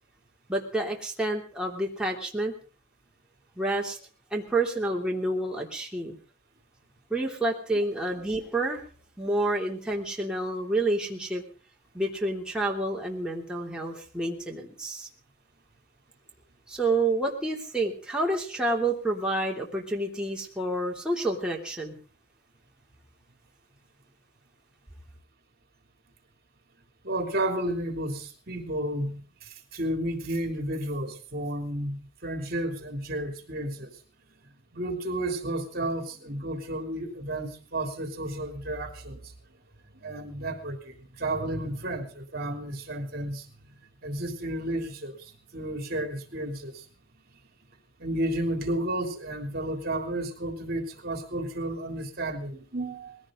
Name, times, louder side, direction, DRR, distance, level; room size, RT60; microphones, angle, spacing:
voice 1, 0.5-2.5 3.6-4.0 4.3-6.2 7.1-8.8 9.2-11.4 11.9-15.1 16.7-22.0, right 2 dB, 5° right, -2 dB, 3.2 m, -29 dB
voice 2, 27.0-34.0 34.7-39.3 39.9-43.5 44.0-46.8 48.0-53.2, right 1 dB, 55° right, 6 dB, 3.3 m, -32 dB
20.5 x 16.5 x 3.9 m, 0.37 s
head